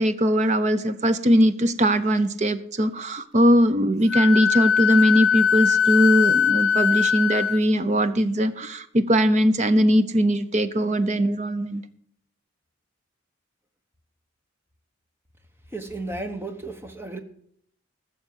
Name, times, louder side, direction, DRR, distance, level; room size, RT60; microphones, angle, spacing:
voice 1, 0.0-11.8, equal, 35° right, 12 dB, 0.7 m, -20 dB
Wind instrument woodwind instrument, 4.1-7.6, left 7 dB, 80° left, 0.6 m, -21 dB
voice 2, 15.7-17.2, right 2 dB, 10° right, 6 dB, 1.1 m, -33 dB
14.5 x 6.6 x 7.5 m, 0.66 s
head